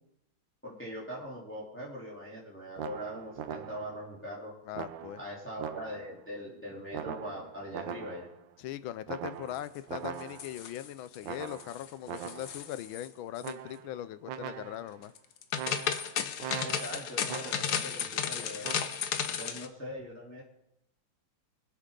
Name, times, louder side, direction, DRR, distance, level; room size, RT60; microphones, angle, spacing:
voice 1, 0.6-4.5 5.2-8.3 16.6-18.7 19.3-20.4, equal, 5° left, -5 dB, 3.3 m, -41 dB
sound 1, 2.8-4.1 4.7-6.2 6.9-8.4 9.1-10.7 11.2-12.7 13.4-14.0 14.3-15.0 15.6-17.9 18.6-19.0, right 10 dB, 70° right, 1.4 m, -41 dB
voice 2, 4.7-5.2 8.6-15.1, left 12 dB, 80° left, 15 dB, 1.4 m, -40 dB
sound 2, 10.2-11.2 11.5-11.9 12.2-13.1 13.4-13.5 15.2-19.7, left 8 dB, 60° left, 1.3 m, -34 dB
25.0 x 8.4 x 3.8 m, 0.82 s
omnidirectional pair, 2.2 m